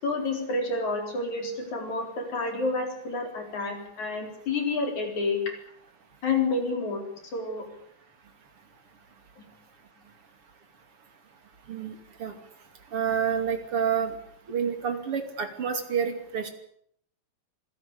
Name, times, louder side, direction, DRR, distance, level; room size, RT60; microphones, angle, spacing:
voice 1, 0.0-5.4 6.2-7.0 7.3-7.6 9.4-9.5, left 3 dB, 70° left, 4 dB, 5.7 m, -29 dB
voice 2, 12.9-14.1 14.5-16.5, right 7 dB, 45° right, 7 dB, 3.5 m, -28 dB
25.5 x 17.0 x 8.6 m, 0.68 s
omnidirectional pair, 3.5 m